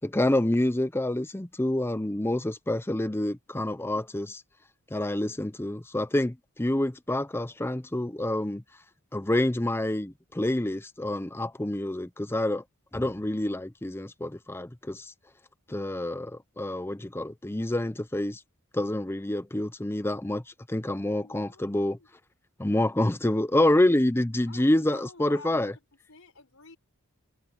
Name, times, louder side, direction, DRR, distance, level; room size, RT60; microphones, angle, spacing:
voice 1, 0.0-4.4 4.9-8.6 9.1-12.6 12.9-15.0 15.7-18.4 18.7-20.4 20.7-22.0 22.6-25.7, left 1 dB, 10° left, 0.6 m, -27 dB
voice 2, 21.1-22.1 24.5-25.8 26.1-26.8, left 3 dB, 70° left, 5.6 m, -50 dB
head